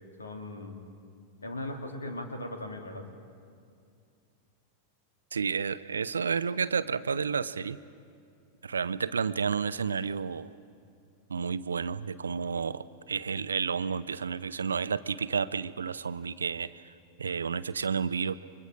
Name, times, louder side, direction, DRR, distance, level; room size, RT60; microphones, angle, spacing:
voice 1, 0.2-0.8 1.4-3.0, left 1 dB, 75° left, 4 dB, 2.6 m, -38 dB
voice 2, 5.3-7.8 8.6-10.5 11.3-16.9 17.2-18.4, right 6 dB, 70° right, 15 dB, 0.6 m, -31 dB
29.5 x 24.5 x 4.9 m, 2.4 s
figure-of-eight pair, 90°, 0 cm